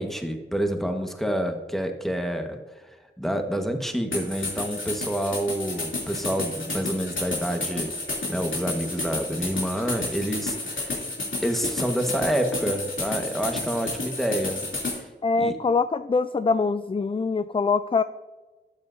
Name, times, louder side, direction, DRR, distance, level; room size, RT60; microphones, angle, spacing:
voice 1, 0.0-2.6 2.8-7.9 8.3-10.9 11.4-14.6 14.9-15.1 15.4-15.6, equal, ahead, 4 dB, 1.4 m, -28 dB
sound 1, 4.1-15.0, left 2 dB, 80° left, 3.0 m, -31 dB
voice 2, 15.2-18.0, left 4 dB, 25° left, 12 dB, 0.3 m, -23 dB
12.5 x 8.6 x 2.7 m, 1.2 s
wide cardioid pair, 45°, 20 cm